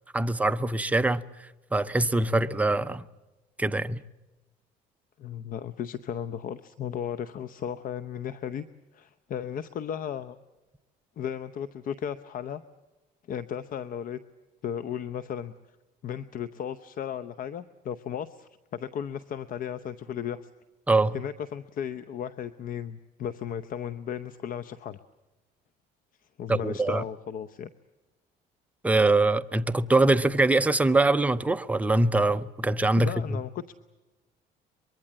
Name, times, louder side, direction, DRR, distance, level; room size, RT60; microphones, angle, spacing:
voice 1, 0.1-3.0 3.6-4.0 20.9-21.1 26.5-27.0 28.8-33.4, right 2 dB, 10° right, 0.7 m, -23 dB
voice 2, 5.2-8.7 8.9-10.4 11.2-12.6 13.3-14.2 14.6-15.5 16.0-20.5 21.1-25.0 26.4-27.7 33.0-33.7, left 9 dB, 55° left, 0.8 m, -35 dB
24.0 x 22.5 x 7.5 m
cardioid pair, 110°, 17 cm